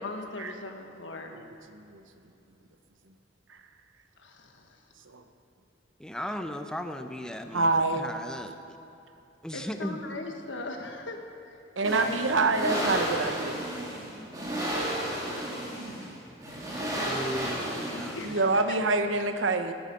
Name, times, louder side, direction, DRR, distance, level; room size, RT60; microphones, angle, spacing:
voice 1, 0.0-1.4 4.2-4.8 9.5-11.2 11.5-11.6 12.0-12.2 12.6-13.0 17.9-18.8, left 2 dB, 75° left, 3 dB, 1.5 m, -39 dB
voice 2, 6.0-8.5 9.4-10.0 16.9-18.2, equal, 5° left, 6 dB, 0.7 m, -36 dB
voice 3, 7.5-8.1 11.8-13.7 15.8-16.1 18.2-19.7, right 3 dB, 90° right, 8 dB, 0.9 m, -26 dB
sound 1, 11.8-18.6, right 1 dB, 20° right, 2.6 m, -33 dB
18.0 x 9.8 x 5.3 m, 2.8 s
head